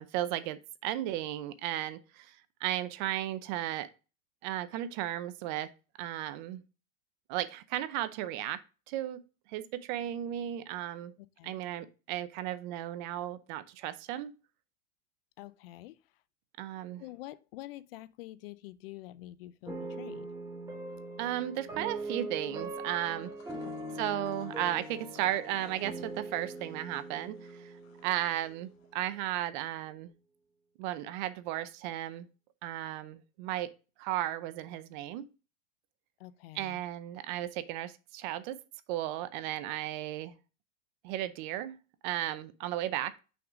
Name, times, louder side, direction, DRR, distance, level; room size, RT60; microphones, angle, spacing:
voice 1, 0.0-3.9 4.4-5.7 6.0-6.6 7.3-8.6 8.9-9.2 9.5-11.1 11.4-14.3 16.6-17.0 21.2-23.3 24.0-27.7 28.0-30.1 30.8-32.3 32.6-33.7 34.0-35.3 36.5-38.6 38.9-40.3 41.0-41.8 42.0-43.1, right 13 dB, 40° right, 0.5 m, -35 dB
voice 2, 15.4-16.0 17.0-20.3 23.6-23.9 36.2-36.8, left 16 dB, 50° left, 0.5 m, -47 dB
sound 1, 19.7-28.8, right 2 dB, 10° right, 0.9 m, -41 dB
sound 2, 23.1-28.9, left 7 dB, 80° left, 1.8 m, -58 dB
5.9 x 3.9 x 4.8 m
supercardioid pair, 140°, 39 cm